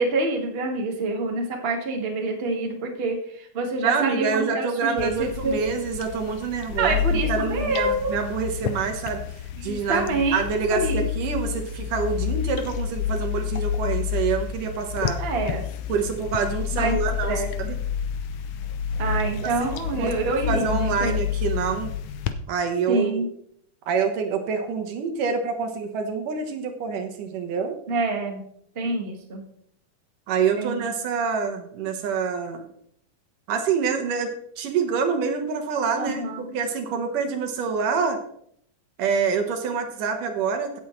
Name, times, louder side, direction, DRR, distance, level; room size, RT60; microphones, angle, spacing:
voice 1, 0.0-5.1 5.4-5.7 6.8-8.1 9.6-10.4 10.8-11.3 15.2-15.6 16.7-17.0 17.3-17.5 19.0-21.1 22.9-23.3 27.9-28.4 28.7-29.5 30.6-30.9 35.9-36.5, right 3 dB, 25° right, 1 dB, 1.4 m, -26 dB
voice 2, 3.8-9.2 9.6-15.2 15.9-17.8 20.5-21.9 22.5-23.3 23.9-27.8 30.3-32.7 33.5-38.2 39.0-40.8, right 5 dB, 80° right, 5 dB, 2.9 m, -26 dB
sound 1, 5.0-22.3, left 8 dB, 85° left, 1.3 m, -29 dB
16.5 x 7.5 x 3.2 m, 0.67 s
omnidirectional pair, 3.7 m